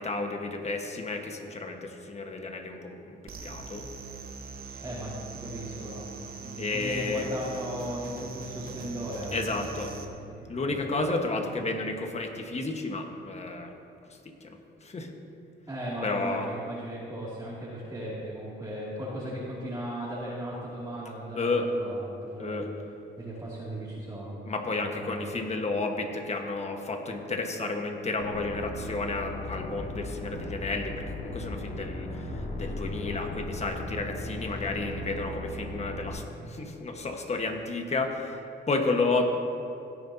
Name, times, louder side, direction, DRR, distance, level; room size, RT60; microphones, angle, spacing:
voice 1, 0.0-3.9 6.6-7.3 9.3-9.9 10.5-13.7 14.4-15.1 16.0-16.5 21.3-21.7 22.4-22.7 24.5-38.4 38.7-39.2, left 3 dB, 35° left, 3 dB, 1.4 m, -32 dB
sound 1, 3.3-10.1, right 5 dB, 50° right, 1.1 m, -42 dB
voice 2, 4.8-6.1 6.4-10.8 15.7-22.7 23.2-24.3 24.7-25.1, right 1 dB, 20° right, -8 dB, 2.5 m, -37 dB
sound 2, 28.2-36.1, left 1 dB, 65° left, 1.6 m, -37 dB
17.0 x 9.4 x 2.8 m, 2.6 s
cardioid pair, 90°, 20 cm